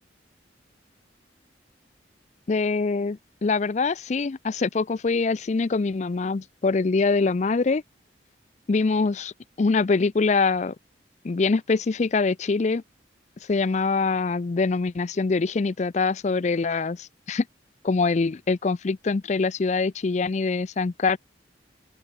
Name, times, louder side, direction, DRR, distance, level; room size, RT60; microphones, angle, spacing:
voice 1, 2.5-7.8 8.7-9.3 9.6-10.7 11.2-12.8 13.5-17.4 17.8-21.2, left 4 dB, 40° left, 0.4 m, -24 dB
open air
head